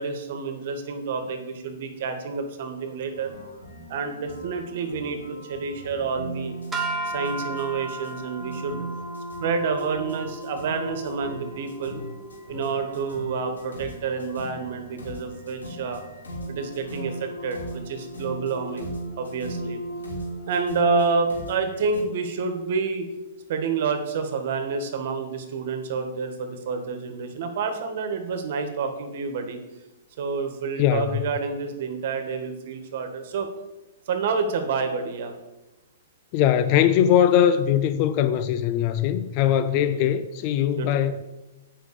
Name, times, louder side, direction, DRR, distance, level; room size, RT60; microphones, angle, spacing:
voice 1, 0.0-3.3 3.9-6.5 7.1-8.9 9.4-12.0 12.5-16.0 16.5-19.8 20.5-23.1 23.5-29.6 30.2-33.5 34.1-35.3 39.8-40.0 40.8-41.0, right 5 dB, 55° right, 1.7 m, -28 dB
sound 1, 3.1-22.0, right 1 dB, 90° left, 3.0 m, -37 dB
sound 2, 6.7-13.1, right 2 dB, 10° right, 1.4 m, -36 dB
voice 2, 30.8-31.2 36.3-41.2, left 10 dB, 40° left, 0.6 m, -21 dB
8.2 x 5.6 x 7.0 m
hypercardioid pair, 125°, 0 cm